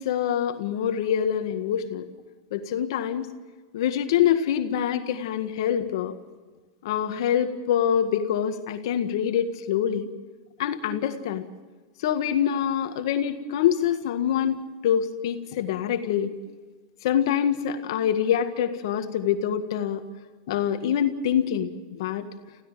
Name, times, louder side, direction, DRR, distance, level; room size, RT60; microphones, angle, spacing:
voice 1, 0.0-2.1 2.5-3.3 3.7-6.2 6.8-10.1 10.6-11.4 12.0-16.3 17.0-20.0 20.5-22.3, left 9 dB, 70° left, 7 dB, 1.8 m, -25 dB
28.0 x 16.0 x 7.6 m, 1.4 s
supercardioid pair, 130°, 2 cm